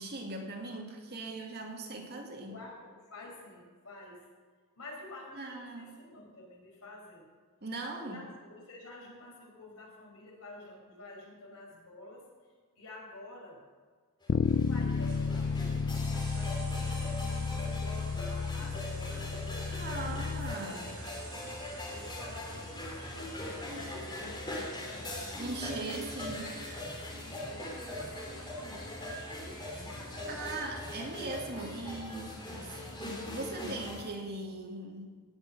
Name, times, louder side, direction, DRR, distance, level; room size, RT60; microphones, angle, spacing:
voice 1, 0.0-2.5 5.4-5.9 7.6-8.2 19.7-20.9 25.4-26.5 30.3-32.3 32.6-32.8 33.2-35.0, right 2 dB, 50° right, 1 dB, 2.3 m, -40 dB
voice 2, 2.4-4.3 4.8-7.3 8.0-12.2 12.8-13.6 14.4-19.3 20.6-21.5 21.9-25.7 27.2-30.6 31.5-31.9, left 2 dB, 75° left, -2 dB, 5.2 m, -50 dB
sound 1, 14.2-34.0, left 1 dB, 20° left, 2.9 m, -41 dB
Bass guitar, 14.3-20.5, left 5 dB, 50° left, 0.4 m, -32 dB
sound 2, 15.1-30.7, right 4 dB, 85° right, 4.1 m, -53 dB
18.0 x 6.7 x 7.5 m, 1.5 s
head